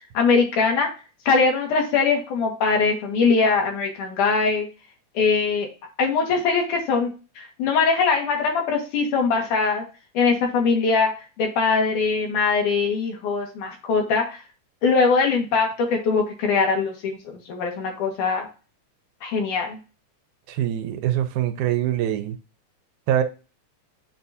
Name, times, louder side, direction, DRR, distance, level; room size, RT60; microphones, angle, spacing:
voice 1, 0.1-0.9 1.3-4.7 5.1-5.7 6.0-7.1 7.4-9.8 10.1-11.1 11.4-14.4 14.8-18.5 19.2-19.8, left 4 dB, 90° left, 1 dB, 3.2 m, -21 dB
voice 2, 20.5-22.4 23.1-23.2, right 11 dB, 90° right, 8 dB, 2.2 m, -23 dB
7.5 x 2.7 x 5.6 m, 0.32 s
omnidirectional pair, 3.5 m